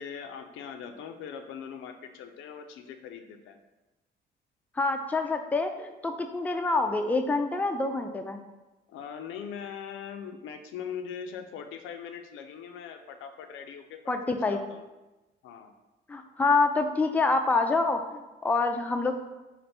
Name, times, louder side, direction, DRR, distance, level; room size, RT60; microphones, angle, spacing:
voice 1, 0.0-3.6 8.9-14.0 14.5-14.8 15.4-15.7, left 7 dB, 85° left, 6 dB, 0.4 m, -41 dB
voice 2, 4.8-8.4 14.1-14.6 16.1-19.1, left 3 dB, 10° left, 5 dB, 0.3 m, -26 dB
3.3 x 2.5 x 4.1 m, 1.1 s
cardioid pair, 90°, 20 cm